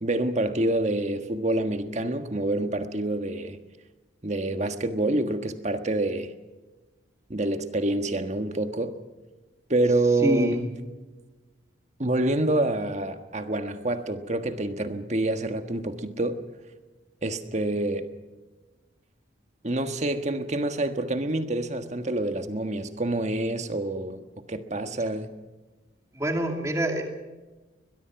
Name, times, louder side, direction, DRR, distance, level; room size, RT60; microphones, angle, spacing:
voice 1, 0.0-3.6 4.2-6.3 7.3-8.9 9.7-10.6 12.0-16.4 17.2-18.0 19.6-24.2 24.5-25.3, right 2 dB, 35° right, 8 dB, 1.5 m, -27 dB
voice 2, 10.2-10.7 26.1-27.0, right 1 dB, 15° right, 3 dB, 2.4 m, -25 dB
22.0 x 21.5 x 5.9 m, 1.2 s
head